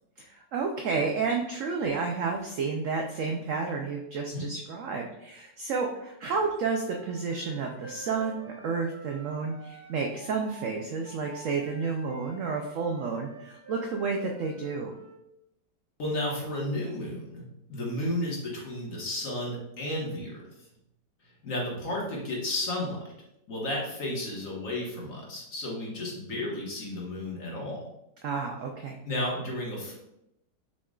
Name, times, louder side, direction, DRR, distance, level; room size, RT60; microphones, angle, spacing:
voice 1, 0.2-14.9 28.2-29.0, right 4 dB, 80° right, 2 dB, 0.7 m, -31 dB
Wind instrument woodwind instrument, 6.7-15.2, right 4 dB, 60° right, 1.4 m, -48 dB
voice 2, 16.0-20.4 21.4-23.0 23.5-27.8 29.0-29.9, left 1 dB, 50° left, -3 dB, 1.4 m, -33 dB
6.2 x 2.3 x 3.7 m, 0.84 s
omnidirectional pair, 1.9 m